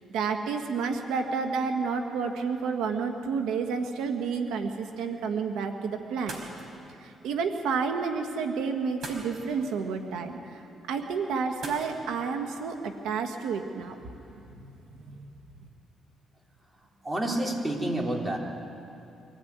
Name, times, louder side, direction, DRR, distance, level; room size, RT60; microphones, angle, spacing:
voice 1, 0.1-6.4 7.0-10.6 10.9-13.9 14.9-15.3, right 5 dB, 90° right, 5 dB, 1.4 m, -30 dB
sound 1, 6.1-14.5, right 2 dB, 55° right, 4.7 m, -47 dB
voice 2, 17.0-18.4, right 1 dB, 20° right, 0 dB, 3.9 m, -29 dB
24.5 x 16.0 x 9.4 m, 2.7 s
cardioid pair, 90°, 0 cm